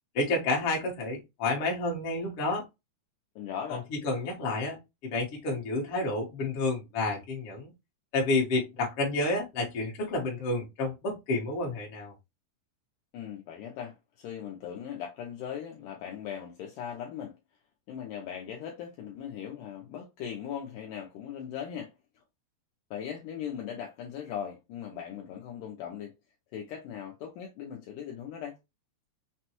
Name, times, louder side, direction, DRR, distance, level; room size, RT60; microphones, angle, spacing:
voice 1, 0.1-2.6 3.7-3.8 4.0-7.7 8.1-12.1, left 2 dB, 60° left, 1.4 m, -30 dB
voice 2, 3.4-3.9 13.1-17.4 17.9-22.2 22.9-26.1 26.5-28.6, left 8 dB, 80° left, 2.0 m, -39 dB
6.0 x 2.2 x 2.9 m
omnidirectional pair, 4.4 m